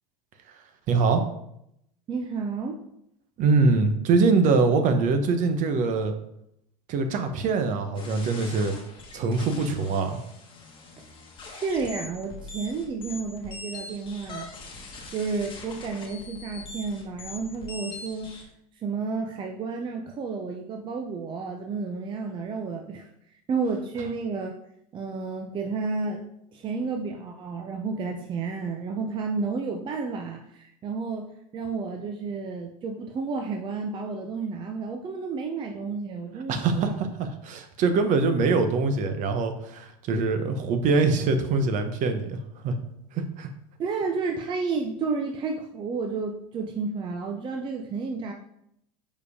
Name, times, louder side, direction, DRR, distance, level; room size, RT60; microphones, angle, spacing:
voice 1, 0.9-1.2 3.4-6.1 6.9-8.7 9.1-10.2 36.5-42.4 42.6-42.7 43.1-43.5, right 4 dB, 45° right, 7 dB, 1.0 m, -23 dB
voice 2, 2.1-2.8 11.0-11.1 11.4-14.5 15.1-18.4 18.8-23.1 23.5-24.5 24.9-37.0 43.8-48.3, right 4 dB, 25° right, 3 dB, 0.6 m, -31 dB
sound 1, 8.0-18.4, left 3 dB, 25° left, 1.6 m, -42 dB
5.1 x 4.7 x 4.9 m, 0.77 s
supercardioid pair, 125°, 19 cm